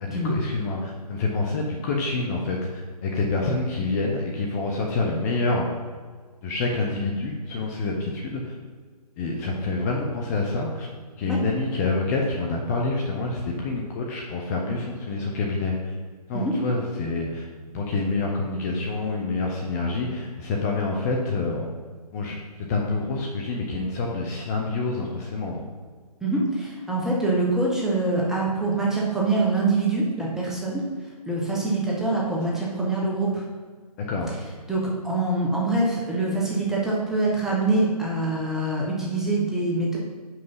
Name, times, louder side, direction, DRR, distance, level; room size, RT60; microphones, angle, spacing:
voice 1, 0.0-5.7 6.4-8.5 9.2-10.9 11.2-15.9 16.3-17.4 17.7-21.7 22.1-25.6 34.1-34.3, left 3 dB, 25° left, -1 dB, 0.8 m, -27 dB
voice 2, 26.2-30.8 31.3-33.4 34.7-40.0, right 2 dB, ahead, -5 dB, 1.1 m, -24 dB
5.7 x 5.4 x 5.5 m, 1.5 s
figure-of-eight pair, 145°, 20 cm